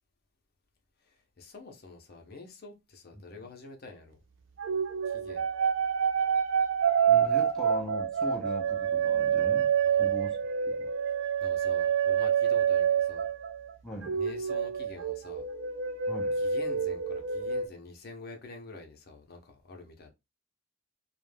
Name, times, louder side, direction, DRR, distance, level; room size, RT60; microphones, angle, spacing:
voice 1, 1.0-4.2 5.1-5.5 9.8-10.3 11.4-13.3 14.1-15.5 16.4-20.1, left 3 dB, 50° left, 0.6 m, -47 dB
sound 1, 4.6-13.7 14.0-17.7, right 7 dB, 65° right, 0.4 m, -27 dB
voice 2, 7.1-10.4 10.6-10.9 13.8-14.2 16.1-16.4, equal, ahead, 0.6 m, -40 dB
2.4 x 2.1 x 3.2 m
head